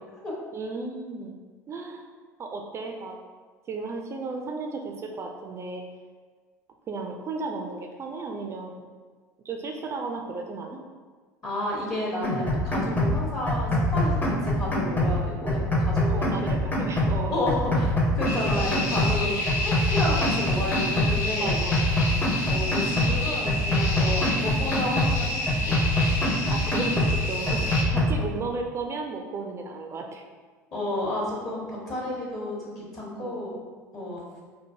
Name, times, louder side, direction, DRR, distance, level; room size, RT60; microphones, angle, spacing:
voice 1, 0.5-1.3 1.7-2.0 2.4-3.2 3.7-5.8 6.9-8.9 9.4-10.8 16.1-17.4 19.2-19.4 21.4-22.3 26.5-30.2 33.2-33.4, right 3 dB, 30° right, 2 dB, 0.4 m, -34 dB
voice 2, 11.4-16.4 17.3-19.3 19.6-21.6 22.5-25.8 30.7-33.6 33.9-34.2, left 1 dB, 40° left, -5 dB, 1.1 m, -31 dB
sound 1, 12.2-13.2 13.5-15.2 15.5-17.2 17.5-19.2 19.5-21.2 21.5-23.2 23.5-25.2 25.5-27.2 27.5-28.2, left 1 dB, 15° left, 0.7 m, -25 dB
sound 2, 18.2-27.8, left 1 dB, 65° left, 0.6 m, -30 dB
4.3 x 2.6 x 2.6 m, 1.5 s
figure-of-eight pair, 70°, 10 cm